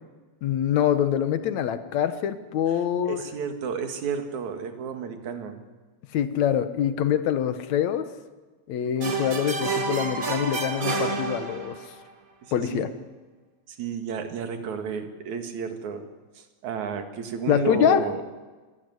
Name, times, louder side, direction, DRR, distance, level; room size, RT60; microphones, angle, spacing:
voice 1, 0.4-3.2 6.1-8.1 8.7-11.8 12.5-12.9 17.5-18.0, left 9 dB, 70° left, 11 dB, 2.5 m, -24 dB
voice 2, 3.0-5.6 12.4-12.9 13.7-16.0 16.3-18.2, right 6 dB, 75° right, 6 dB, 3.3 m, -32 dB
sound 1, 9.0-12.0, right 3 dB, 35° right, 1.9 m, -29 dB
26.5 x 15.0 x 9.6 m, 1.3 s
omnidirectional pair, 3.3 m